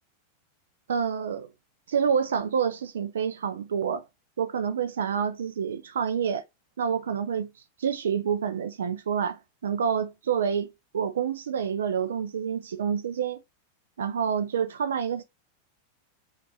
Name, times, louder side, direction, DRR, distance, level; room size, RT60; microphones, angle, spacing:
voice 1, 0.9-1.5 1.9-4.0 4.4-6.4 6.8-7.5 7.8-13.4 14.0-15.2, right 7 dB, 65° right, 0.4 m, -28 dB
5.8 x 2.5 x 3.2 m
figure-of-eight pair, 90°, 0 cm